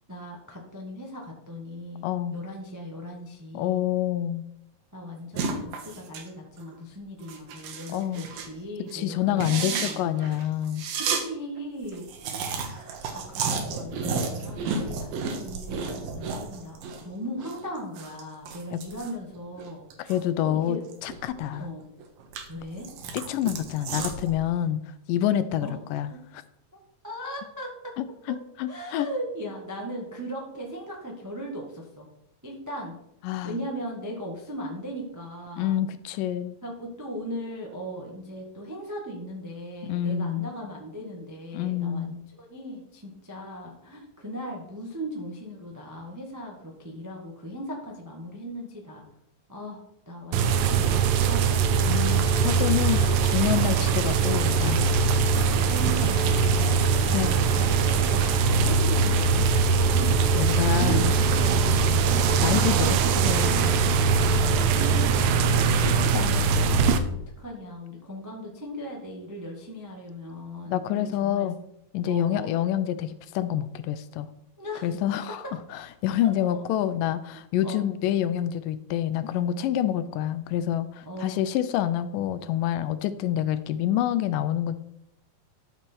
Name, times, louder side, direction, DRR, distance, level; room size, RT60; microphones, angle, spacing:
voice 1, 0.1-3.8 4.9-10.4 10.9-20.1 20.4-20.8 21.6-21.8 22.5-22.9 25.6-25.8 26.1-26.2 27.0-27.9 28.7-32.1 32.4-32.9 33.4-35.8 36.6-49.0 49.5-51.9 53.3-53.5 55.6-58.3 58.6-62.5 64.2-71.5 72.1-72.6 74.6-74.9 75.3-75.5 76.2-76.3 77.6-77.8 81.0-81.5, equal, 30° right, -1 dB, 0.3 m, -38 dB
voice 2, 2.0-2.4 3.5-4.4 7.9-8.3 8.9-10.8 18.7-18.8 20.1-20.8 21.0-21.7 23.1-24.8 25.1-26.1 28.0-29.1 33.2-33.6 35.6-36.6 39.8-40.5 41.5-42.2 51.8-54.9 57.1-57.3 60.4-61.1 62.4-63.8 66.1-66.5 70.7-71.6 71.9-74.3 74.8-75.4 75.7-84.8, left 11 dB, 80° left, 13 dB, 2.1 m, -27 dB
sound 1, 5.3-6.3 6.6-6.8 7.2-8.6 8.9-9.0 9.3-11.2 11.6-11.7 11.8-17.0 17.3-20.2 20.6-21.6 22.0-24.3, right 5 dB, 90° right, 3.1 m, -32 dB
sound 2, 50.3-67.0, right 5 dB, 75° right, 1.9 m, -22 dB
sound 3, 52.0-58.7, left 3 dB, 50° left, 1.4 m, -39 dB
12.5 x 6.2 x 4.6 m, 0.78 s
omnidirectional pair, 4.0 m